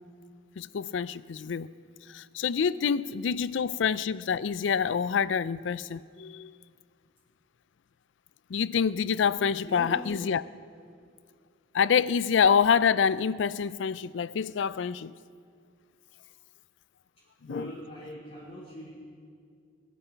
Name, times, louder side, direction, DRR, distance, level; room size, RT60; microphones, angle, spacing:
voice 1, 0.6-1.7 2.1-6.5 8.5-10.4 11.7-15.1 17.4-17.7, left 6 dB, 70° left, 0.4 m, -26 dB
voice 2, 9.7-10.0 17.4-18.9, equal, 30° left, 4.3 m, -40 dB
23.5 x 11.0 x 4.6 m
head